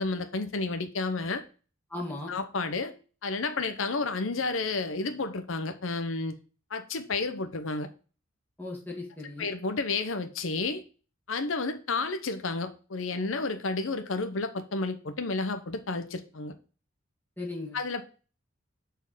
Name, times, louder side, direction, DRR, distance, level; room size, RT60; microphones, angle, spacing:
voice 1, 0.0-1.4 2.3-2.9 3.2-6.3 6.7-7.9 9.4-10.8 11.3-16.5 17.7-18.0, left 3 dB, 75° left, 0.8 m, -31 dB
voice 2, 1.9-2.3 8.6-9.5 17.4-17.8, left 2 dB, 10° left, 2.0 m, -37 dB
7.2 x 4.4 x 5.4 m
head